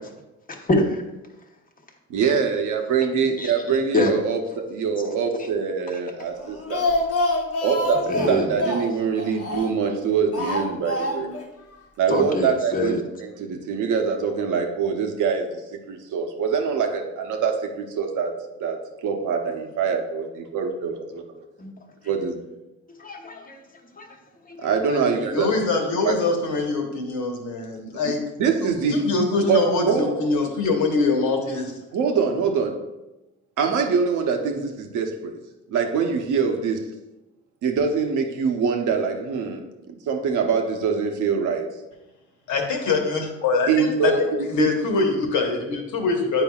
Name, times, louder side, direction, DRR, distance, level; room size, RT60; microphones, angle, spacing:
voice 1, 0.5-1.0 3.4-3.6 3.9-4.1 8.1-8.5 12.1-13.0 21.6-21.7 23.0-23.6 23.9-24.1 24.5-24.7, left 2 dB, 30° left, 2 dB, 1.0 m, -25 dB
voice 2, 2.1-6.9 7.6-11.3 12.0-12.9 13.2-20.2 20.5-21.0 22.0-22.4 24.6-25.5 26.0-26.2 28.0-28.1 28.4-29.1 29.5-30.1 31.9-32.8 33.6-35.4 35.7-36.9 37.6-41.7 43.7-44.2 44.6-44.7, right 6 dB, 80° right, 4 dB, 0.9 m, -24 dB
Speech, 6.4-9.9 10.3-11.5 11.7-11.8 12.1-12.2, left 1 dB, 50° left, 1.0 m, -26 dB
voice 3, 24.9-28.2 28.9-31.7 42.5-44.1 44.5-46.4, left 3 dB, 75° left, 2 dB, 1.3 m, -23 dB
9.0 x 4.8 x 2.4 m, 0.99 s
cardioid pair, 90°, 30 cm